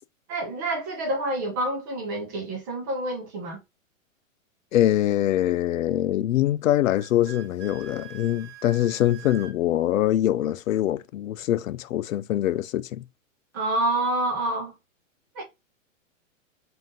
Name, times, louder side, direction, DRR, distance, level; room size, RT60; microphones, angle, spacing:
voice 1, 0.3-3.6 13.5-14.7 15.3-15.4, right 1 dB, 15° right, 0.6 m, -27 dB
voice 2, 4.7-13.0, left 12 dB, 80° left, 0.5 m, -24 dB
Wind instrument woodwind instrument, 7.0-9.6, right 10 dB, 60° right, 1.3 m, -44 dB
3.9 x 2.6 x 3.6 m
hypercardioid pair, 170°, 40 cm